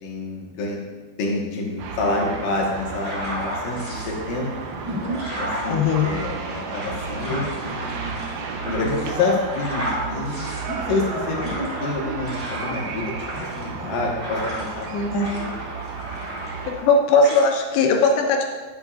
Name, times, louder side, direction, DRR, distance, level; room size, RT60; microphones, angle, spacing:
voice 1, 0.0-0.8 1.2-4.5 5.4-8.1 8.6-11.4 11.8-13.1 13.4-14.9 15.3-15.5, left 3 dB, 60° left, -2 dB, 2.6 m, -27 dB
sound 1, 1.8-16.7, right 5 dB, 75° right, 2.5 m, -33 dB
sound 2, 2.9-4.1 4.6-14.9 15.2-16.9 17.2-17.5, equal, 5° left, 1.3 m, -33 dB
voice 2, 5.7-6.1 14.9-15.3 16.7-18.5, left 4 dB, 80° left, 2 dB, 3.0 m, -19 dB
11.5 x 8.4 x 2.5 m, 1.4 s
omnidirectional pair, 5.0 m